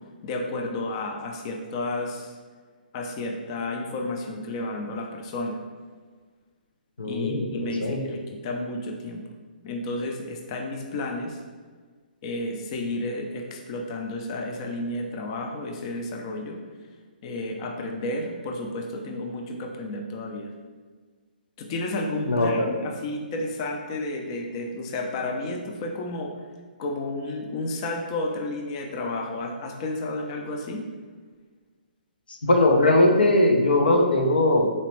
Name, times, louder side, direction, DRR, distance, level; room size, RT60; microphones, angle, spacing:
voice 1, 0.2-2.4 2.9-5.6 7.0-9.2 9.6-11.4 12.2-16.6 17.2-20.5 21.6-26.4 26.8-30.8, left 2 dB, 35° left, 2 dB, 0.4 m, -31 dB
voice 2, 7.0-8.0 22.3-22.7 32.3-34.7, left 1 dB, 90° left, 3 dB, 0.7 m, -20 dB
4.2 x 2.9 x 3.1 m, 1.5 s
hypercardioid pair, 145°, 5 cm